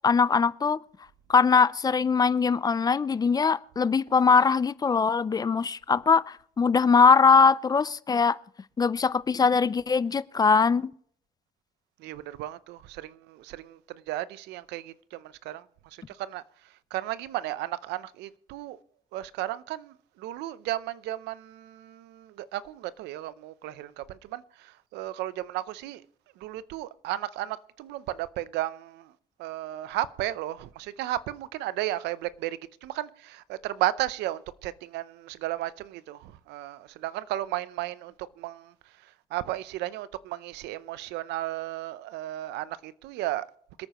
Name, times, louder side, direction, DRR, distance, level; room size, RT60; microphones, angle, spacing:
voice 1, 0.0-0.8 1.3-8.4 8.8-10.9, left 5 dB, 25° left, 0.4 m, -21 dB
voice 2, 12.0-13.1 13.5-13.8 14.1-14.9 15.5-15.6 16.2-16.4 16.9-18.8 19.1-19.9 20.2-24.0 24.3-24.4 24.9-26.0 26.4-29.0 29.4-36.2 36.5-38.1 38.4-38.6 39.3-43.5, right 15 dB, 85° right, 0.6 m, -34 dB
26.5 x 9.0 x 3.0 m
cardioid pair, 110°, 17 cm